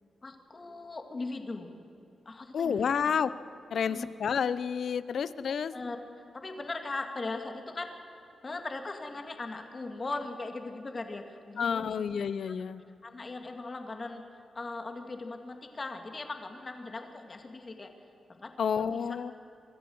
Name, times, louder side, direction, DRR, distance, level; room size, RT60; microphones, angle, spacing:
voice 1, 0.2-1.7 2.3-2.9 3.8-4.1 5.7-6.0 6.3-8.0 8.4-11.9 13.0-14.2 14.5-17.9 18.3-19.0, left 3 dB, 35° left, 5 dB, 2.2 m, -39 dB
voice 2, 2.5-3.3 3.7-5.7 11.6-12.8 18.6-19.3, left 7 dB, 70° left, 15 dB, 0.7 m, -30 dB
23.5 x 14.0 x 7.9 m, 2.8 s
cardioid pair, 100°, 0 cm